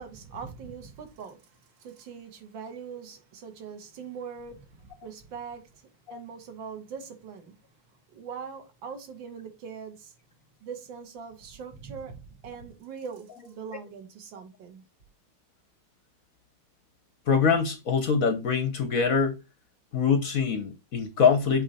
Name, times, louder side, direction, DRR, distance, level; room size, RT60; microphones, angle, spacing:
voice 1, 0.0-7.5 8.1-10.1 10.6-14.8, right 6 dB, 60° right, 2.1 m, -42 dB
voice 2, 17.3-19.4 19.9-21.6, left 6 dB, 55° left, 1.0 m, -24 dB
8.4 x 3.2 x 4.2 m
omnidirectional pair, 2.4 m